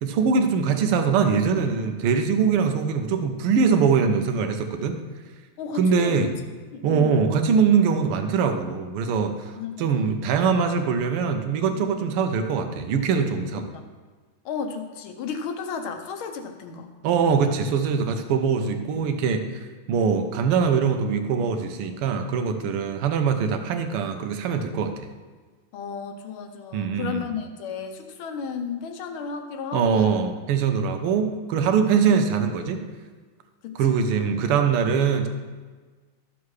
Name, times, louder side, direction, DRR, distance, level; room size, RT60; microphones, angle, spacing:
voice 1, 0.0-5.0 5.7-6.3 6.8-9.5 9.8-13.7 17.0-19.5 19.9-24.9 26.7-27.2 29.7-32.8 33.8-35.3, right 6 dB, 85° right, 6 dB, 1.7 m, -22 dB
voice 2, 5.6-6.3 6.7-7.2 9.5-10.3 13.5-13.8 14.4-16.9 25.7-30.1 31.8-32.1 33.6-34.0, left 6 dB, 70° left, 6 dB, 1.6 m, -34 dB
13.0 x 7.0 x 3.2 m, 1.4 s
omnidirectional pair, 2.4 m